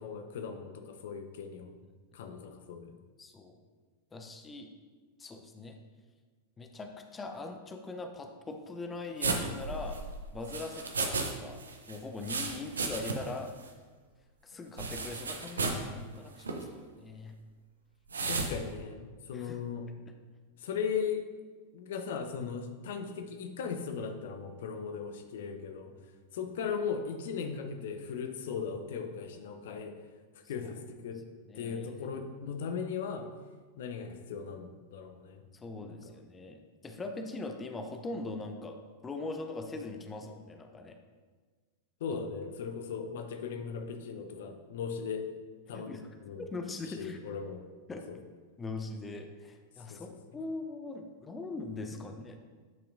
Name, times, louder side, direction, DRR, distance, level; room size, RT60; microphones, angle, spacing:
voice 1, 0.0-1.7 2.1-3.0 18.3-19.9 20.6-21.3 21.7-26.0 26.3-30.0 30.4-31.2 31.5-33.3 33.8-35.4 35.9-36.1 42.0-45.3 45.7-46.5 46.9-47.6 48.1-48.2 49.9-50.0 52.0-52.1, left 6 dB, 55° left, 7 dB, 0.6 m, -38 dB
voice 2, 3.2-3.5 4.1-4.7 5.2-5.8 6.6-10.0 10.3-13.5 14.4-17.3 19.3-19.6 25.3-25.4 28.5-28.6 30.6-30.7 31.5-31.9 35.5-38.8 39.0-41.0 42.1-42.2 45.7-46.0 46.4-47.2 47.9-48.1 48.6-52.4, left 3 dB, 15° left, 5 dB, 0.6 m, -41 dB
sound 1, 9.2-11.3 11.6-13.4 13.7-13.8 14.8-15.9 16.4-16.6 18.1-18.5, right 3 dB, 75° right, 0.8 m, -34 dB
10.5 x 5.6 x 2.6 m, 1.4 s
figure-of-eight pair, 90°, 0 cm